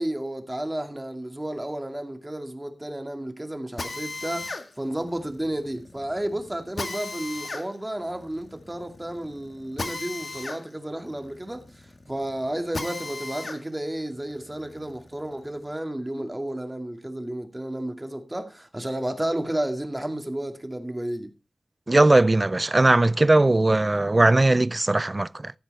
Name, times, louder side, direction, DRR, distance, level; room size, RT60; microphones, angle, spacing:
voice 1, 0.0-21.3, right 1 dB, 20° right, 2.3 m, -32 dB
Drill, 3.8-13.6 14.1-15.7, left 3 dB, 65° left, 2.0 m, -37 dB
voice 2, 21.9-25.5, right 2 dB, 35° right, 0.5 m, -19 dB
14.5 x 8.1 x 4.2 m
wide cardioid pair, 65°, 0 cm